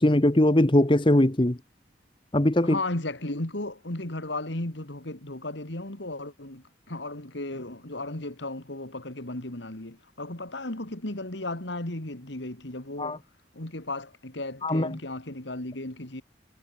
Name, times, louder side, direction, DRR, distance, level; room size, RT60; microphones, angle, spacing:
voice 1, 0.0-1.6 2.3-2.8 13.0-13.2 14.6-15.0, left 1 dB, 25° left, 1.2 m, -21 dB
voice 2, 2.6-13.2 13.5-16.2, left 2 dB, 70° left, 2.7 m, -35 dB
head